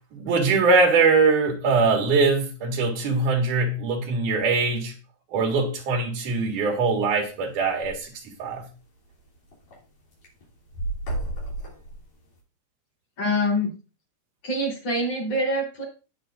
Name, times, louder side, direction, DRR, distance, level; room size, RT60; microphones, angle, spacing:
voice 1, 0.1-4.9 5.3-8.1 8.4-8.7, right 4 dB, 80° right, 3.3 m, -22 dB
sound 1, 6.3-6.5 6.9-7.0 7.2-7.3 7.6-8.0 8.6-8.7 9.0-9.8 10.1-12.4, right 1 dB, 80° left, 4.8 m, -32 dB
voice 2, 13.2-13.7 14.4-15.8, left 1 dB, 50° left, 4.8 m, -25 dB
17.5 x 6.3 x 2.6 m
omnidirectional pair, 3.6 m